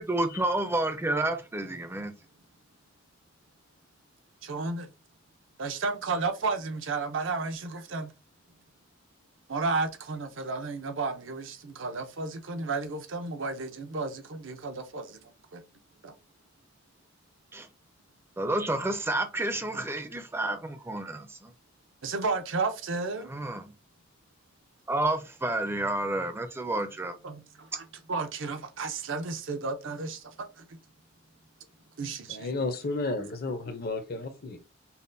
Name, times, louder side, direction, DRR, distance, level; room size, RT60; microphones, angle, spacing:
voice 1, 0.0-2.1 17.5-17.7 18.4-21.5 23.3-23.7 24.9-27.2, right 2 dB, 10° right, 0.5 m, -30 dB
voice 2, 4.4-4.9 5.6-8.1 9.5-15.6 16.0-16.1 22.0-23.3 27.2-30.8 32.0-32.5, right 3 dB, 70° right, 0.6 m, -33 dB
voice 3, 32.3-34.6, left 3 dB, 50° left, 0.6 m, -32 dB
5.5 x 2.2 x 2.6 m
head